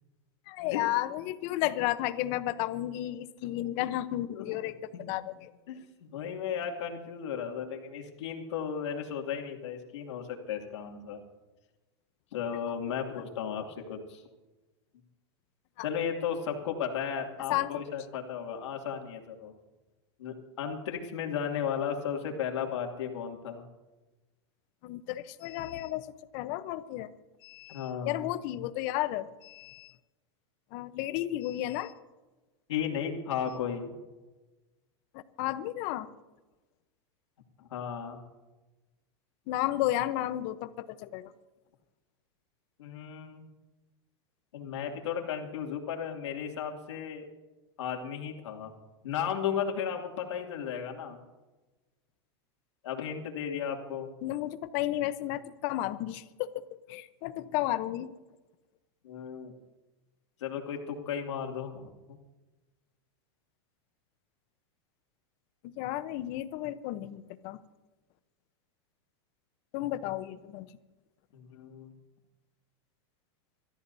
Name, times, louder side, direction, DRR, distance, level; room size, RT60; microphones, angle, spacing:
voice 1, 0.5-5.2 17.5-18.0 24.8-27.1 27.4-29.9 30.7-31.9 35.4-36.1 39.5-41.3 54.2-56.6 56.9-58.1 65.8-67.6 69.7-70.7, left 14 dB, 50° left, 13 dB, 0.9 m, -33 dB
voice 2, 4.3-4.6 4.9-5.1 5.7-5.8 6.1-11.2 12.3-14.2 15.8-19.5 20.2-23.6 27.7-28.3 32.7-33.9 37.6-38.2 42.8-43.5 44.5-47.2 47.8-48.7 49.0-51.2 52.8-54.1 59.0-59.5 60.4-62.2 71.3-71.9, left 8 dB, 80° left, 2 dB, 2.7 m, -35 dB
26.5 x 14.0 x 2.8 m, 1.1 s
supercardioid pair, 135°, 15 cm